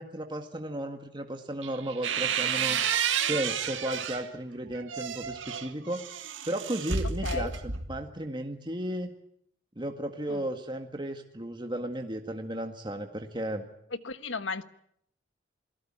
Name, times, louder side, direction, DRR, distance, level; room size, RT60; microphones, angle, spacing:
voice 1, 0.0-2.8 3.3-6.0 6.5-9.1 9.7-13.7, right 1 dB, 25° right, 1.8 m, -34 dB
sound 1, 1.6-4.3 4.7-8.1, right 7 dB, 75° right, 2.0 m, -31 dB
voice 2, 14.0-14.6, left 4 dB, 75° left, 1.4 m, -34 dB
28.5 x 18.5 x 8.9 m
head